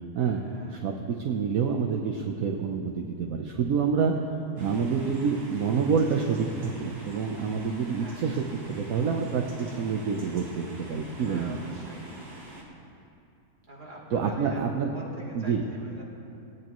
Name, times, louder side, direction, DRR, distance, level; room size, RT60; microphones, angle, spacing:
voice 1, 0.1-0.8 7.9-8.3 11.2-12.1 13.7-14.6 14.9-16.0, right 1 dB, 30° right, -4 dB, 2.6 m, -45 dB
voice 2, 0.7-4.1 4.6-8.4 8.8-11.6 14.1-14.9 15.3-15.6, right 6 dB, 65° right, 1 dB, 1.2 m, -27 dB
sound 1, 4.6-12.6, right 1 dB, 90° right, 2.6 m, -45 dB
18.5 x 17.5 x 3.1 m, 2.6 s
omnidirectional pair, 1.6 m